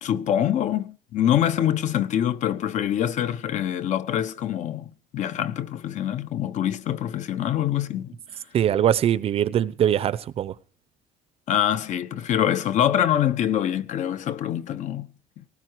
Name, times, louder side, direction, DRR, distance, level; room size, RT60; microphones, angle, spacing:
voice 1, 0.0-8.1 11.5-15.1, left 10 dB, 45° left, 1.1 m, -25 dB
voice 2, 8.5-10.5, right 10 dB, 35° right, 0.7 m, -22 dB
19.0 x 15.0 x 4.7 m
cardioid pair, 160°, 17 cm